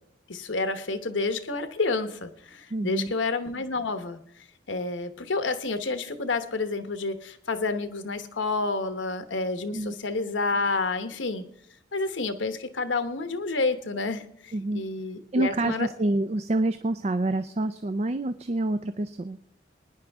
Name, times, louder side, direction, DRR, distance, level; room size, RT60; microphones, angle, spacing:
voice 1, 0.3-4.2 4.7-11.4 11.9-15.9, left 3 dB, 90° left, 9 dB, 1.1 m, -29 dB
voice 2, 2.7-3.1 9.7-9.9 14.5-14.8 15.3-19.4, right 2 dB, 35° right, 10 dB, 0.4 m, -27 dB
22.5 x 10.0 x 3.5 m, 0.70 s
head